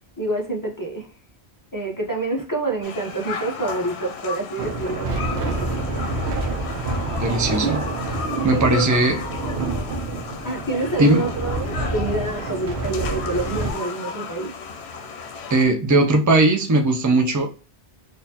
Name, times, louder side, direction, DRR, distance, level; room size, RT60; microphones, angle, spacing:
voice 1, 0.2-1.1 1.7-5.8 8.5-8.9 10.4-14.5, right 2 dB, 20° left, 0 dB, 0.8 m, -27 dB
sound 1, 2.8-15.6, left 5 dB, 85° left, 0.9 m, -34 dB
sound 2, 4.6-13.7, right 3 dB, 85° right, 1.0 m, -27 dB
sound 3, 6.4-8.5, left 1 dB, 50° right, 1.0 m, -39 dB
voice 2, 7.2-7.8 8.4-9.2 11.0-11.2 15.5-17.5, right 2 dB, 20° right, 4 dB, 0.5 m, -18 dB
4.1 x 2.6 x 2.8 m, 0.36 s
omnidirectional pair, 1.1 m